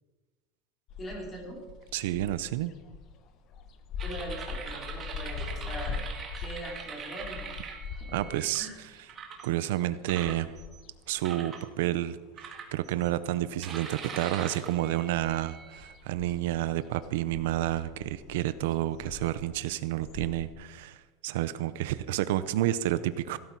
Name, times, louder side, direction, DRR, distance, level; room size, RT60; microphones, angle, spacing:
sound 1, 0.9-12.5 12.8-14.1 14.4-20.5, left 5 dB, 35° left, 0.9 m, -42 dB
voice 1, 1.0-1.6 4.0-6.0 6.4-7.5 7.9-8.3 8.6-8.8, right 1 dB, 15° left, 0 dB, 3.0 m, -41 dB
voice 2, 1.9-2.7 8.1-8.7 9.4-10.5 11.1-23.4, right 14 dB, 70° right, 14 dB, 0.6 m, -30 dB
sound 2, 4.0-8.6 9.1-9.5 10.1-10.8 11.2-11.6 12.4-13.1 13.6-15.9, right 6 dB, 20° right, 1.6 m, -42 dB
16.0 x 12.5 x 4.6 m, 1.2 s
supercardioid pair, 180°, 0 cm